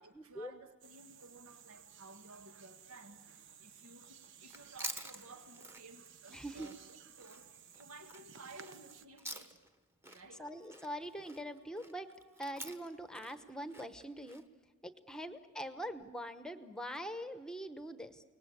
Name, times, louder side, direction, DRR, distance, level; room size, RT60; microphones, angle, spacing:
voice 1, 0.0-9.6 10.1-10.4 15.1-15.4, right 3 dB, 90° right, 7 dB, 1.7 m, -56 dB
sound 1, 0.8-9.1, right 8 dB, 60° right, 0.9 m, -57 dB
Chewing mastication, 4.4-9.8 10.0-14.4, right 1 dB, 10° right, 1.3 m, -49 dB
voice 2, 6.3-6.7 10.4-12.1 12.4-14.4 14.8-18.2, equal, 5° left, 10 dB, 1.0 m, -43 dB
sound 2, 10.1-14.0, left 5 dB, 40° right, 2.9 m, -68 dB
29.5 x 19.5 x 8.5 m, 1.3 s
head